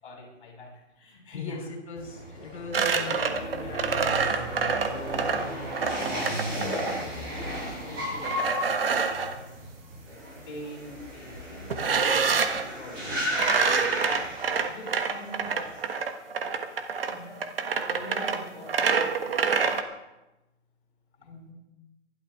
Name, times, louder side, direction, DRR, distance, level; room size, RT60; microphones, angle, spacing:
voice 1, 0.0-1.7 3.0-3.9 4.6-5.4 5.9-6.4 6.7-9.5 10.3-14.0 14.5-15.7 16.3-16.5 17.0-17.4 17.8-19.0 21.2-21.5, left 2 dB, 45° left, -2 dB, 7.3 m, -45 dB
voice 2, 1.9-4.4, left 4 dB, 60° left, 2 dB, 5.2 m, -39 dB
sound 1, 2.0-15.0 15.3-15.9, equal, 15° right, 5.6 m, -34 dB
sound 2, 2.7-7.0 8.2-9.4 11.7-12.7 13.3-19.8, right 5 dB, 45° right, 1.4 m, -27 dB
23.5 x 12.5 x 3.6 m, 0.98 s
hypercardioid pair, 170°, 38 cm